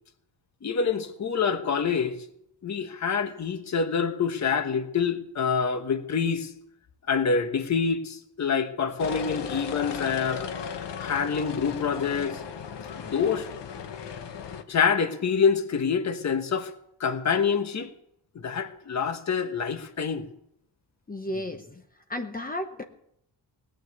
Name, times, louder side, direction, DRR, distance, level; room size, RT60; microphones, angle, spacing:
voice 1, 0.6-2.2 2.6-6.5 7.1-10.5 11.0-12.4 13.0-13.5 14.7-16.7 17.0-17.9 18.3-20.3, left 6 dB, 40° left, 1.2 m, -26 dB
sound 1, 9.0-14.6, left 7 dB, 75° left, 1.3 m, -36 dB
voice 2, 21.1-21.8 22.1-22.8, left 1 dB, 20° left, 0.9 m, -33 dB
19.0 x 9.2 x 8.1 m
wide cardioid pair, 175°, 43 cm